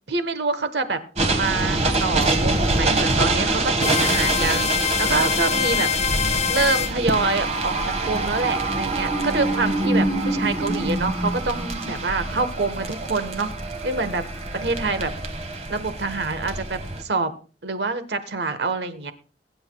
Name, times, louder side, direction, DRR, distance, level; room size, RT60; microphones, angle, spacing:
voice 1, 0.1-1.0 1.3-6.2 6.5-13.5 13.8-14.2 14.5-15.1 15.7-17.3 17.6-19.1, right 3 dB, 70° right, 11 dB, 1.2 m, -26 dB
sound 1, 1.2-17.0, right 2 dB, 40° right, 1.7 m, -25 dB
sound 2, 3.8-6.9, left 7 dB, 40° left, 0.6 m, -24 dB
22.0 x 10.5 x 2.3 m, 0.37 s
head